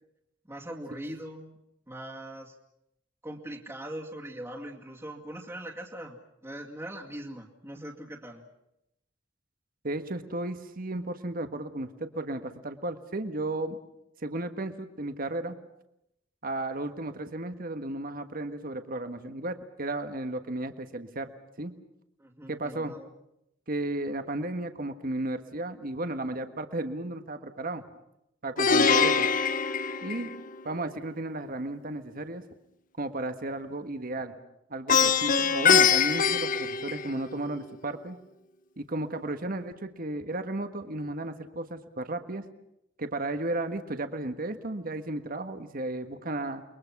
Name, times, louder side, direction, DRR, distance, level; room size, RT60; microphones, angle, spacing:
voice 1, 0.5-1.6 1.9-2.5 3.2-6.2 6.4-8.4 22.2-23.1, right 1 dB, 15° right, -1 dB, 2.3 m, -41 dB
voice 2, 9.8-13.8 14.2-15.5 16.4-21.3 21.6-21.7 22.5-23.0 23.7-27.8 28.4-29.3 30.0-30.3 30.6-32.4 33.0-34.3 34.7-38.2 38.8-42.5 43.0-46.6, right 2 dB, 50° right, 8 dB, 1.5 m, -34 dB
Plucked string instrument, 28.6-30.7 34.9-37.5, left 6 dB, 45° left, 0.9 m, -23 dB
29.5 x 22.0 x 6.0 m, 0.82 s
head